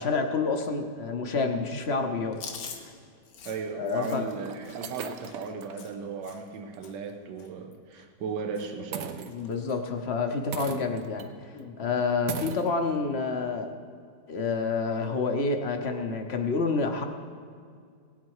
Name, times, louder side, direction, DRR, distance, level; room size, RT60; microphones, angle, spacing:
voice 1, 0.0-2.4 3.7-4.3 9.3-13.7 14.3-17.1, left 4 dB, 50° left, 5 dB, 0.9 m, -28 dB
Chewing mastication, 2.3-6.6 6.8-7.1 7.4-8.3 8.5-8.9 9.1-9.8 10.2-10.4 11.4-11.8, left 6 dB, 85° left, 1.7 m, -45 dB
sound 1, 2.9-3.0 3.8-3.9 4.4-5.8 6.2-6.3 6.7-6.9 8.9-9.7 10.5-11.3 11.6-11.7 12.3-12.7, right 8 dB, 65° right, 1.0 m, -38 dB
voice 2, 3.4-9.3, right 4 dB, 85° right, 6 dB, 1.5 m, -36 dB
17.5 x 8.5 x 4.8 m, 2.2 s
omnidirectional pair, 1.8 m